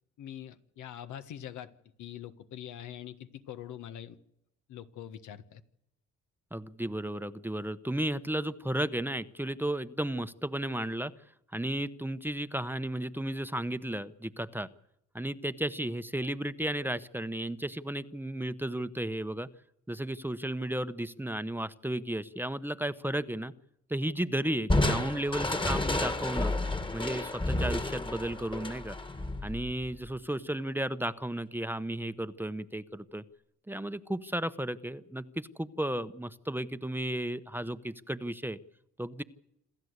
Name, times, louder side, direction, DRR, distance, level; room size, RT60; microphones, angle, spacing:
voice 1, 0.2-1.7 2.0-4.2 4.7-5.6, left 10 dB, 75° left, 10 dB, 1.6 m, -43 dB
voice 2, 6.5-11.1 11.5-14.7 15.1-19.5 19.9-23.5 23.9-26.5 26.9-29.0 29.4-33.2 33.7-38.6 39.0-39.2, right 1 dB, 5° right, 13 dB, 0.9 m, -34 dB
Crushing, 24.7-30.1, left 2 dB, 15° left, 1.8 m, -31 dB
27.5 x 13.5 x 8.2 m, 0.79 s
cardioid pair, 90°, 30 cm